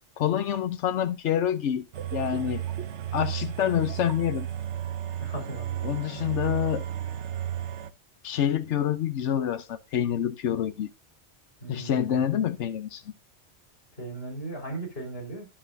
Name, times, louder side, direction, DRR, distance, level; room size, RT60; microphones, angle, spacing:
voice 1, 0.2-1.9 2.1-2.6 3.1-4.5 5.8-6.8 8.2-10.9 11.7-13.0, left 10 dB, 85° left, 1.1 m, -27 dB
sound 1, 1.9-7.9, right 11 dB, 75° right, 1.1 m, -33 dB
voice 2, 5.2-5.8 11.6-12.2 14.0-15.5, right 2 dB, 60° left, 5.0 m, -37 dB
10.5 x 10.0 x 2.6 m
omnidirectional pair, 1.2 m